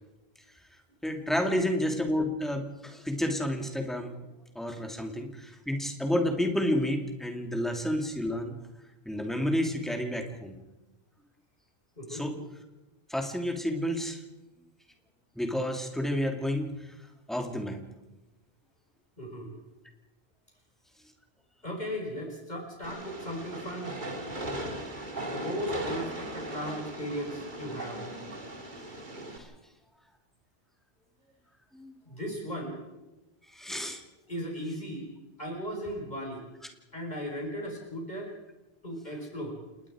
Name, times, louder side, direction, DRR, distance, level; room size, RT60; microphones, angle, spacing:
voice 1, 1.0-4.1 4.5-8.6 9.0-10.6 12.1-12.3 13.1-14.2 15.3-16.9 17.3-17.8 29.4-29.5 31.7-31.9 33.5-34.0, left 1 dB, ahead, 4 dB, 2.6 m, -30 dB
voice 2, 12.0-12.3 19.2-19.5 21.6-23.9 24.8-24.9 25.2-28.1 32.0-32.8 34.3-35.1 35.4-36.4 36.9-38.3 38.8-39.6, equal, 45° left, 0 dB, 5.1 m, -36 dB
Train, 22.8-29.4, right 1 dB, 50° right, 2.5 m, -38 dB
29.5 x 19.0 x 5.0 m, 1.0 s
omnidirectional pair, 1.1 m